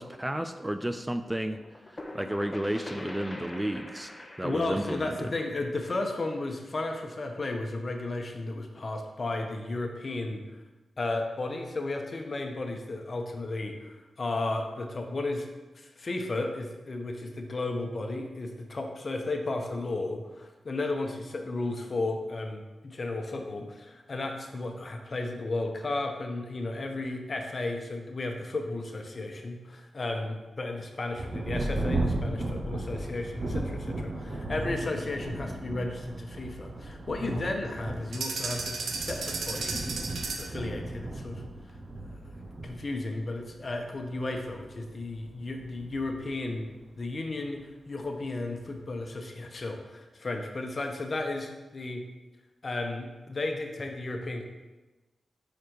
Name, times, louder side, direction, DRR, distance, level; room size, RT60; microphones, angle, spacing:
voice 1, 0.0-1.6 1.9-5.3, right 1 dB, 15° right, 9 dB, 0.3 m, -32 dB
sound 1, 1.5-7.1, left 1 dB, 25° left, 0.9 m, -44 dB
voice 2, 4.4-10.4 11.0-15.5 15.7-40.0 40.4-41.4 42.6-46.7 47.0-52.0 52.6-54.4, left 2 dB, 50° left, 4 dB, 0.9 m, -34 dB
Thunder, 31.1-47.2 48.0-48.1 48.6-49.1, right 2 dB, 55° right, 0.8 m, -36 dB
sound 2, 38.1-40.6, right 4 dB, 85° right, 0.7 m, -34 dB
5.0 x 4.9 x 4.5 m, 1.1 s
cardioid pair, 55°, 0 cm